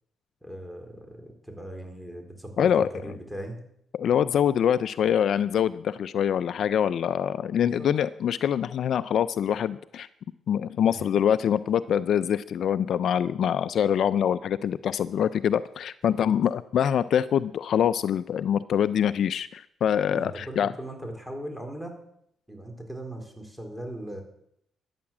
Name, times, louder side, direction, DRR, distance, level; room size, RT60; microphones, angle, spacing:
voice 1, 0.4-3.6 7.5-7.9 10.9-11.0 16.0-16.3 20.1-22.0 22.5-24.2, right 1 dB, ahead, 3 dB, 3.9 m, -39 dB
voice 2, 2.6-2.9 3.9-10.1 10.5-20.7, left 9 dB, 65° left, 15 dB, 0.4 m, -24 dB
13.5 x 9.6 x 7.3 m, 0.74 s
cardioid pair, 90°, 0 cm